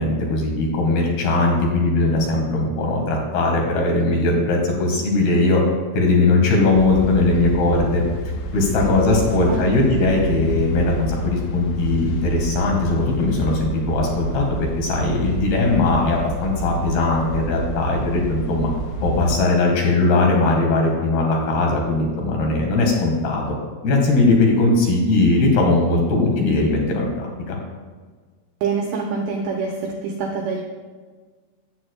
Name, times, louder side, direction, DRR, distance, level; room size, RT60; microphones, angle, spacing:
voice 1, 0.0-5.6 5.9-8.0 8.5-18.7 19.0-23.4 23.8-27.6, left 2 dB, 60° left, 0 dB, 3.1 m, -19 dB
sound 1, 6.8-19.4, equal, 90° left, 3.5 m, -29 dB
voice 2, 9.1-9.6 28.6-30.6, right 4 dB, 90° right, 0 dB, 2.4 m, -26 dB
14.5 x 8.7 x 2.3 m, 1.5 s
omnidirectional pair, 5.8 m